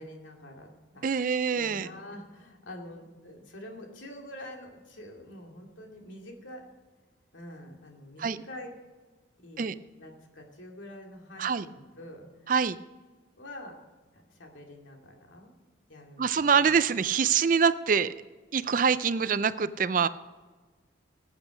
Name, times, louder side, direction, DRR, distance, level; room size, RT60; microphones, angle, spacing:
voice 1, 0.0-6.6 7.3-8.7 9.4-9.7 10.0-12.5 13.4-13.8 14.1-15.6 15.9-16.6, left 1 dB, 80° left, 1 dB, 2.5 m, -46 dB
voice 2, 1.0-1.9 8.2-8.4 9.6-9.7 11.4-11.7 12.5-12.8 16.2-18.1 18.5-20.1, right 6 dB, 45° right, 15 dB, 0.4 m, -25 dB
18.5 x 8.2 x 5.1 m, 1.3 s
head